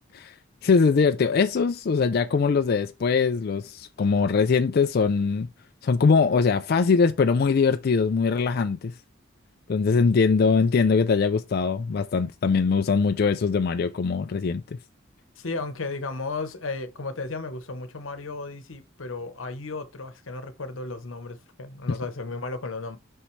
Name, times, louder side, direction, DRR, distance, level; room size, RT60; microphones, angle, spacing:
voice 1, 0.6-5.5 5.8-8.9 9.7-14.6, left 5 dB, 50° left, 0.4 m, -22 dB
voice 2, 15.4-23.0, left 3 dB, 90° left, 1.0 m, -34 dB
5.8 x 5.5 x 3.2 m
head